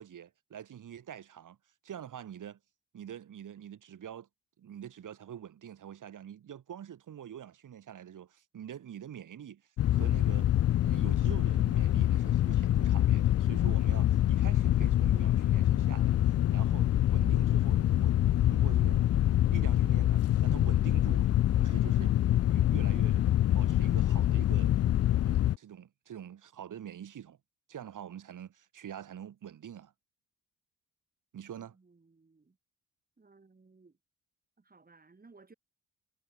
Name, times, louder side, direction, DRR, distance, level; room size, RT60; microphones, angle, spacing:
voice 1, 0.0-1.6 1.8-2.6 2.9-4.3 4.6-9.6 9.9-10.5 10.8-16.1 16.5-18.2 18.5-19.1 19.5-22.1 22.5-23.3 23.5-24.7 25.2-27.4 27.7-29.9 31.3-31.8, right 9 dB, 70° right, 5.2 m, -45 dB
sound 1, 9.8-25.6, left 12 dB, 50° left, 0.4 m, -25 dB
voice 2, 31.7-32.6 33.2-34.0 34.6-35.5, right 3 dB, 25° right, 5.3 m, -59 dB
cardioid pair, 75°, 33 cm